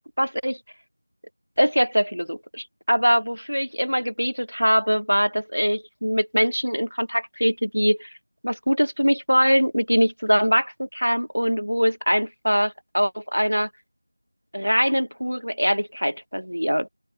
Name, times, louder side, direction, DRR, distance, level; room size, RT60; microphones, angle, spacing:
voice 1, 0.2-0.6 1.6-8.1 8.4-13.7 14.5-16.9, equal, 90° right, 0.6 m, -22 dB
open air
figure-of-eight pair, 175°, 0 cm